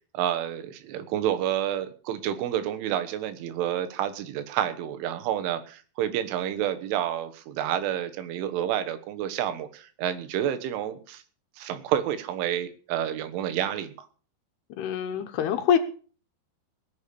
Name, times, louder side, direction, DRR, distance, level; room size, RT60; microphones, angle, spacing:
voice 1, 0.1-11.2 11.6-14.1, right 10 dB, 90° right, 11 dB, 3.8 m, -29 dB
voice 2, 14.7-15.8, left 9 dB, 70° left, 7 dB, 2.7 m, -25 dB
20.0 x 7.0 x 7.0 m, 0.40 s
omnidirectional pair, 5.4 m